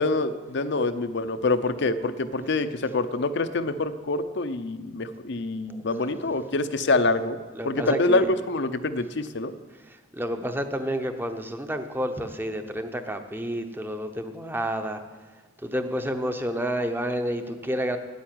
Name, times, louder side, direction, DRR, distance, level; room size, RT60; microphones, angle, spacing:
voice 1, 0.0-7.4 7.6-9.5, left 2 dB, 60° left, 11 dB, 0.7 m, -26 dB
voice 2, 7.5-8.3 9.9-15.0 15.6-18.0, equal, 10° right, 7 dB, 0.7 m, -30 dB
9.3 x 8.7 x 9.0 m, 1.3 s
head